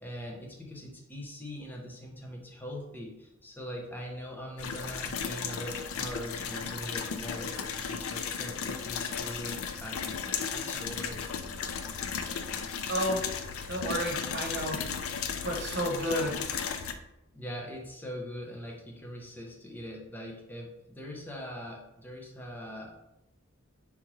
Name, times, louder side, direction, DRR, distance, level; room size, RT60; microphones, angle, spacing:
voice 1, 0.0-10.1 10.5-11.3 17.3-23.0, equal, 10° left, -1 dB, 0.7 m, -42 dB
sound 1, 4.6-16.9, left 6 dB, 80° left, 0.4 m, -35 dB
voice 2, 12.9-13.2 13.7-14.8 15.4-16.7, equal, 50° right, 0 dB, 1.1 m, -31 dB
4.5 x 3.6 x 3.0 m, 0.90 s
head